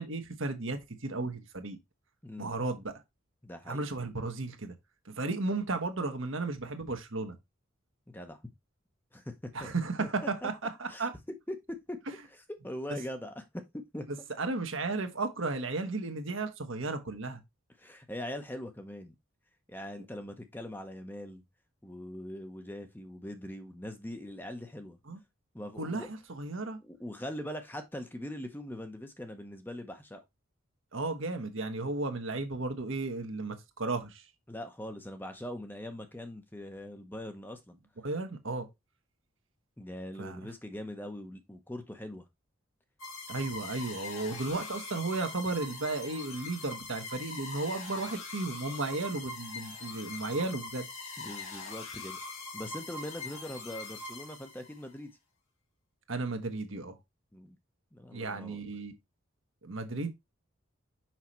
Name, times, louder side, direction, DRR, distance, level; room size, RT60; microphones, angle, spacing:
voice 1, 0.0-1.8 2.4-2.9 3.7-4.7 5.1-7.3 9.5-11.1 14.1-17.4 25.1-25.2 25.8-26.8 30.9-34.2 38.0-38.7 40.2-40.4 43.3-50.9 56.1-56.9 58.1-58.9 59.6-60.1, right 3 dB, 70° right, 1.3 m, -34 dB
voice 2, 2.2-2.5 3.4-3.8 8.1-8.4 9.1-9.7 10.0-10.1 10.4-10.5 10.9-11.1 11.5-12.0 12.3-13.4 13.9-14.0 17.8-19.1 19.7-21.4 21.8-25.0 25.5-26.1 26.6-30.2 34.5-37.8 39.8-42.2 51.2-52.2 52.5-55.1 57.3-57.6 57.9-58.6, left 1 dB, 10° left, 0.8 m, -41 dB
sound 1, 43.0-54.8, left 3 dB, 80° left, 2.1 m, -42 dB
5.9 x 5.7 x 3.1 m
head